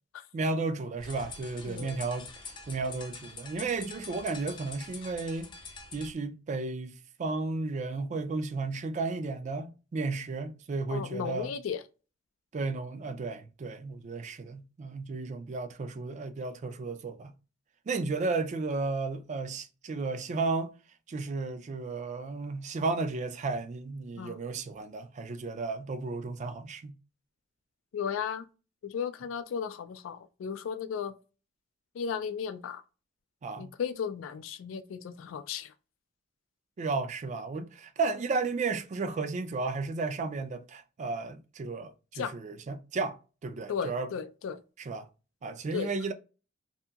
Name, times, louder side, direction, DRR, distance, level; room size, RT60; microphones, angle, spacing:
voice 1, 0.3-5.5 5.9-11.5 12.5-17.3 17.9-20.7 21.1-26.9 33.4-33.7 36.8-44.1 44.8-45.1 45.4-46.1, right 3 dB, 40° right, 0.3 m, -33 dB
sound 1, 1.0-6.1, left 4 dB, 25° left, 0.4 m, -45 dB
voice 2, 1.7-2.0 10.9-11.8 24.2-24.4 27.9-28.4 28.8-31.1 31.9-32.8 33.6-35.7 42.2-42.3 43.7-44.6 45.7-46.1, left 7 dB, 85° left, 0.3 m, -35 dB
2.7 x 2.6 x 2.3 m
head